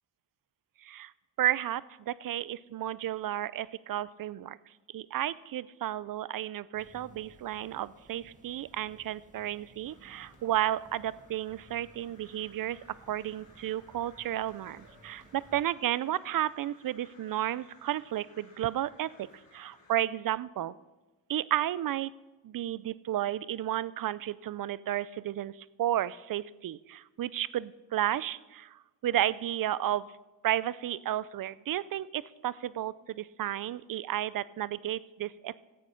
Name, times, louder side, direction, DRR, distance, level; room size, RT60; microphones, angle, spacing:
voice 1, 1.4-4.6 4.9-12.8 13.1-19.3 19.5-20.7 21.3-22.1 22.4-25.5 25.8-30.1 30.4-35.6, right 12 dB, 50° right, 20 dB, 0.5 m, -32 dB
sound 1, 6.7-15.6, right 2 dB, 15° right, 1.6 m, -58 dB
Crow, 9.8-19.9, left 3 dB, 45° left, 3.8 m, -61 dB
14.0 x 8.3 x 5.2 m, 1.2 s
cardioid pair, 75°, 46 cm